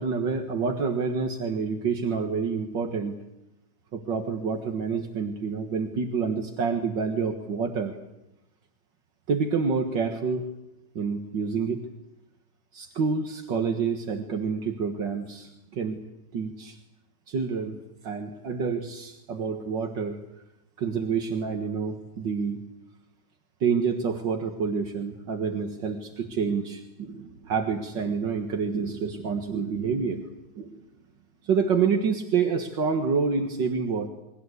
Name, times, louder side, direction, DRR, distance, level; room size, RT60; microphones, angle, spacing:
voice 1, 0.0-3.2 3.9-8.0 9.3-10.5 11.0-11.8 12.7-16.0 16.3-16.8 17.3-20.2 20.8-22.6 23.6-30.3 30.6-30.8 31.4-34.1, right 5 dB, 75° right, 4 dB, 2.3 m, -28 dB
29.0 x 23.0 x 8.2 m, 0.93 s
omnidirectional pair, 2.0 m